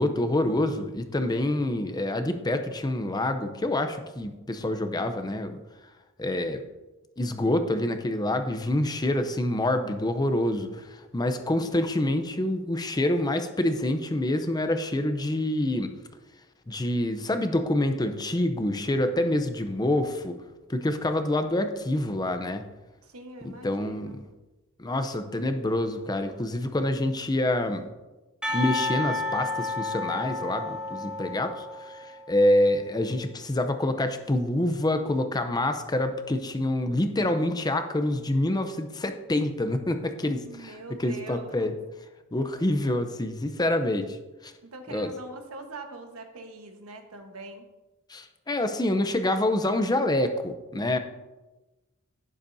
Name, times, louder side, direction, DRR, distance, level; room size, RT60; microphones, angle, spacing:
voice 1, 0.0-5.6 6.2-6.6 7.2-15.9 16.7-20.4 20.7-22.6 23.4-24.2 24.8-27.8 28.5-41.7 42.3-44.2 44.4-44.5 44.9-45.1 48.1-51.0, left 1 dB, 20° left, 8 dB, 0.6 m, -27 dB
voice 2, 11.2-11.9 23.0-24.2 40.4-41.8 44.6-47.7, right 2 dB, 85° right, 5 dB, 1.3 m, -43 dB
Percussion, 28.4-32.3, left 2 dB, 5° right, 1.6 m, -31 dB
11.5 x 10.0 x 2.7 m, 1.1 s
head